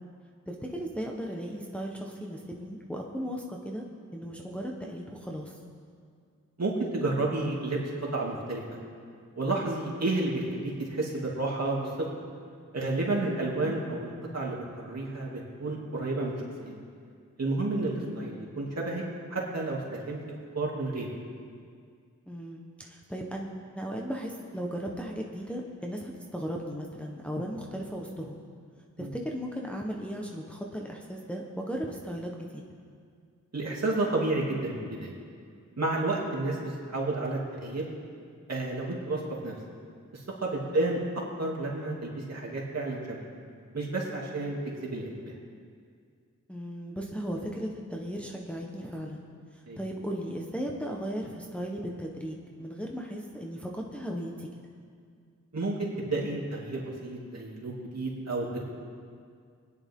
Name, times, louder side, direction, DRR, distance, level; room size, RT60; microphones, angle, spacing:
voice 1, 0.5-3.8 4.1-5.6 13.2-13.4 17.9-18.2 22.3-28.4 29.0-32.6 40.6-41.0 46.5-49.2 49.5-54.5, equal, 5° left, -1 dB, 1.2 m, -36 dB
voice 2, 6.6-7.8 8.1-8.8 9.4-12.1 12.7-16.3 16.6-16.7 17.4-19.0 19.3-20.2 20.5-21.1 29.0-29.1 33.5-35.1 35.8-37.8 38.5-39.5 40.1-43.2 43.7-45.1 49.7-49.8 55.5-58.6, right 2 dB, 55° right, -3 dB, 2.8 m, -31 dB
21.5 x 10.0 x 3.8 m, 2.2 s
wide cardioid pair, 80°, 32 cm